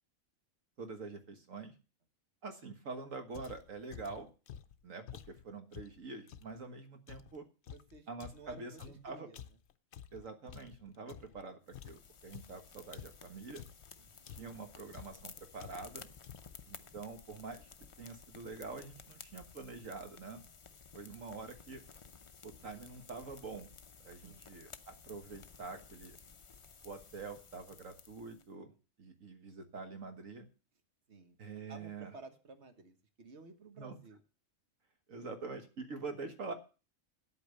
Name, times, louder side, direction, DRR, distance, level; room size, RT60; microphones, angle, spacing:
voice 1, 0.8-1.7 2.4-4.3 4.8-7.4 8.1-9.3 10.1-13.7 14.3-16.1 16.7-17.7 18.0-20.5 20.9-21.8 22.4-23.7 24.0-26.2 26.8-30.5 31.4-32.1 33.8-34.0 35.1-36.5, right 4 dB, 75° right, 7 dB, 1.9 m, -46 dB
sound 1, 3.3-6.6 7.1-11.4 11.7-13.9 14.3-14.7 14.9-15.3 15.6-16.0 16.2-16.6, left 9 dB, 60° left, 0.9 m, -51 dB
voice 2, 7.7-8.1 8.3-9.4 14.0-14.4 16.8-17.0 24.2-24.5 31.1-34.2, right 3 dB, 55° right, 8 dB, 1.6 m, -54 dB
sound 2, 11.7-28.5, left 5 dB, 40° left, 0.4 m, -55 dB
9.3 x 8.5 x 6.6 m, 0.35 s
omnidirectional pair, 1.4 m